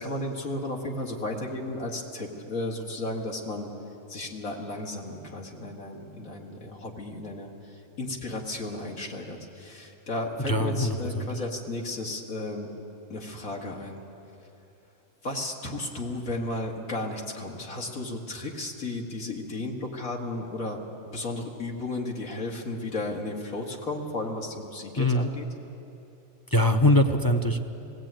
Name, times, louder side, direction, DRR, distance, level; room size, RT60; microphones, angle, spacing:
voice 1, 0.0-3.7 4.1-12.7 13.1-14.0 15.2-20.8 21.0-25.5, left 2 dB, 80° left, -1 dB, 2.5 m, -34 dB
voice 2, 10.5-11.4 25.0-25.3 26.5-27.6, left 1 dB, 25° left, 5 dB, 0.5 m, -23 dB
18.5 x 16.5 x 9.0 m, 2.9 s
omnidirectional pair, 1.4 m